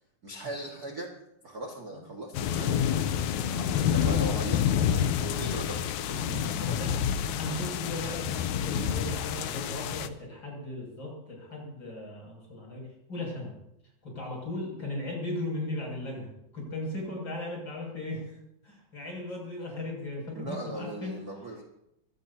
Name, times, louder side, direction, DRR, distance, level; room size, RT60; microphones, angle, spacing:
voice 1, 0.2-1.1 1.4-3.0 3.5-6.8 20.4-21.6, right 1 dB, 35° right, 0 dB, 1.9 m, -39 dB
sound 1, 2.3-10.1, left 9 dB, 75° left, 1.9 m, -28 dB
voice 2, 3.9-4.3 6.8-6.9 7.4-13.5 14.0-18.4 18.6-21.2, left 1 dB, 35° left, -2 dB, 7.6 m, -37 dB
25.0 x 17.0 x 2.8 m, 0.83 s
omnidirectional pair, 3.8 m